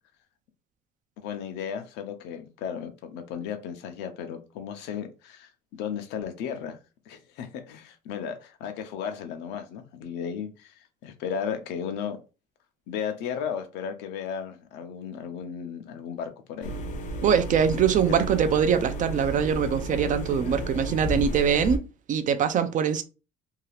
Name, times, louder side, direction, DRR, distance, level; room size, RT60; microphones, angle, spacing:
voice 1, 1.2-6.8 7.1-10.8 11.0-12.2 12.9-16.7 20.4-20.6, left 7 dB, 90° left, 0.7 m, -35 dB
sound 1, 16.6-21.8, equal, 45° left, 0.6 m, -33 dB
voice 2, 17.2-23.0, right 7 dB, 50° right, 0.5 m, -23 dB
2.8 x 2.3 x 3.2 m
cardioid pair, 110°, 17 cm